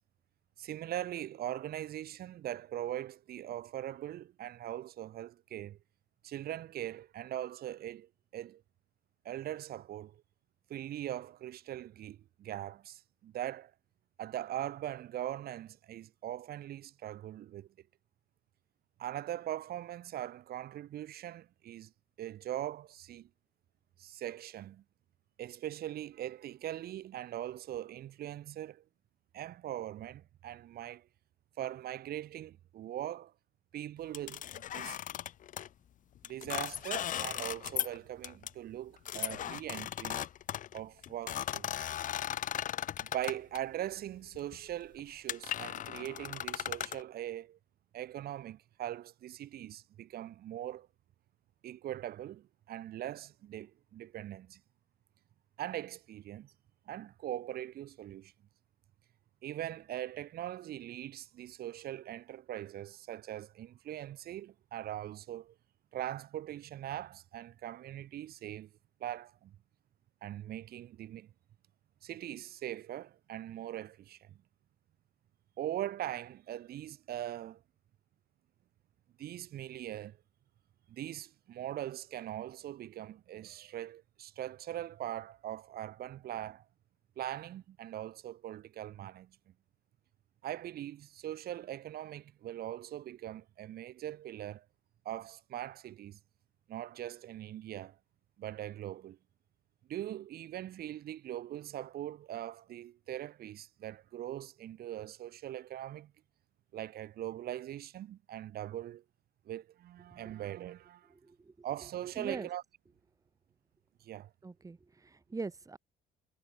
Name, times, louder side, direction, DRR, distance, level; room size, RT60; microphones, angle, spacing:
voice 1, 0.6-5.8 6.2-8.6 9.2-10.2 10.7-13.7 14.2-17.7 19.0-21.9 22.2-23.3 24.0-24.8 25.4-28.8 29.3-31.1 31.6-33.3 33.7-35.0 36.2-40.3 40.7-41.9 43.0-47.6 47.9-50.9 51.6-54.6 55.6-56.5 56.9-58.3 59.4-65.5 65.9-68.7 69.0-69.6 70.2-71.3 72.0-74.4 75.6-77.6 79.2-80.2 80.9-86.6 87.2-89.4 90.4-94.7 95.0-96.2 96.7-98.0 98.4-99.2 99.9-106.1 106.7-109.0 109.4-111.1 111.6-112.6 114.0-114.3, right 12 dB, 65° right, 6.4 m, -41 dB
sound 1, 34.1-35.7 36.2-38.0 38.2-38.5 39.0-43.6 44.3-44.6 45.0-45.1 45.3-47.0, left 11 dB, 50° left, 0.8 m, -37 dB
voice 2, 112.2-112.5 114.4-115.8, right 3 dB, 20° right, 2.6 m, -42 dB
cardioid pair, 110°, 17 cm